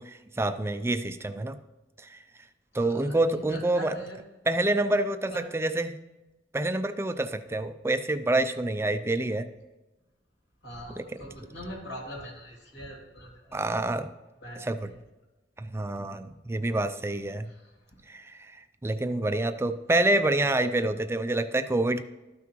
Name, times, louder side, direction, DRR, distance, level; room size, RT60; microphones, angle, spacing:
voice 1, 0.0-1.6 2.0-2.2 2.7-4.0 4.5-6.0 6.5-9.5 11.0-11.2 13.5-14.1 14.6-14.9 15.6-17.5 18.1-18.6 18.8-22.0, right 2 dB, 15° right, 10 dB, 0.3 m, -27 dB
voice 2, 2.7-4.2 5.3-5.4 10.6-13.6 14.4-14.7, equal, 70° left, -1 dB, 2.5 m, -42 dB
13.0 x 5.9 x 3.1 m, 1.1 s
head